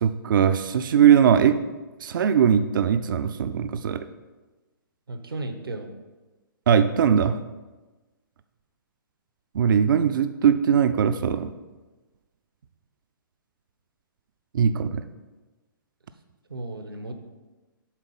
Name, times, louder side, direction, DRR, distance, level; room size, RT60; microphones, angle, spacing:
voice 1, 0.0-1.6 2.0-4.0 6.7-7.3 9.5-11.5 14.5-15.0, right 8 dB, 65° right, 10 dB, 0.4 m, -20 dB
voice 2, 5.1-5.9 16.5-17.1, right 2 dB, 85° right, 7 dB, 0.9 m, -34 dB
7.3 x 4.1 x 5.4 m, 1.2 s
figure-of-eight pair, 125°, 12 cm